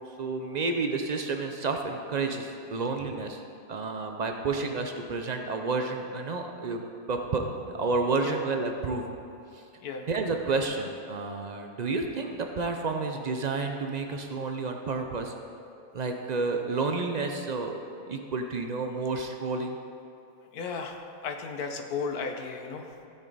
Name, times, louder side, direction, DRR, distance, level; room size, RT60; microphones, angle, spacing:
voice 1, 0.2-3.4 3.7-6.8 7.1-9.1 9.5-9.6 10.1-15.3 15.9-17.8 18.1-19.8, right 3 dB, 65° right, 4 dB, 0.4 m, -30 dB
voice 2, 20.5-22.9, left 5 dB, 90° left, 4 dB, 1.4 m, -35 dB
15.5 x 6.2 x 4.0 m, 2.7 s
omnidirectional pair, 1.5 m